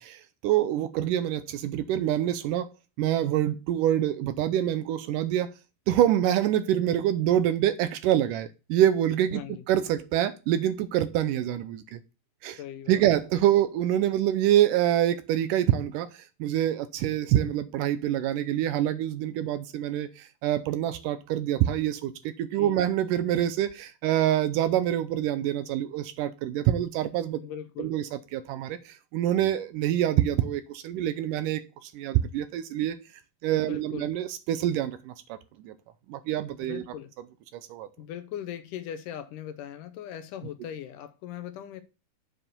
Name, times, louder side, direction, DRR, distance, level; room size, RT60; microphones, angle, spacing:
voice 1, 0.0-2.7 3.0-5.5 5.9-9.4 9.7-12.0 12.4-12.6 12.9-27.4 27.8-28.0 28.3-33.0 33.4-35.4 35.6-35.7 36.1-36.8 37.5-37.9, right 12 dB, 80° right, 2.1 m, -26 dB
voice 2, 9.3-9.7 12.5-13.1 22.5-22.8 27.4-27.9 33.6-34.1 36.6-37.1 38.0-41.8, left 10 dB, 75° left, 2.2 m, -39 dB
7.7 x 4.8 x 6.6 m
omnidirectional pair, 4.1 m